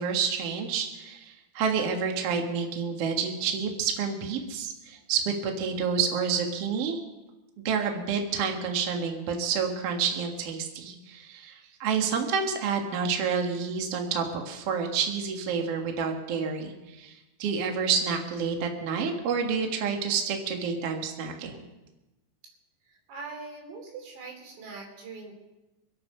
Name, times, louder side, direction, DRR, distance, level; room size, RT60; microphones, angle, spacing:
voice 1, 0.0-7.0 7.6-11.5 11.8-21.6, right 6 dB, 55° right, 3 dB, 1.8 m, -29 dB
voice 2, 22.8-25.3, right 4 dB, 90° right, 1 dB, 5.5 m, -42 dB
25.5 x 8.6 x 5.5 m, 1.0 s
omnidirectional pair, 5.0 m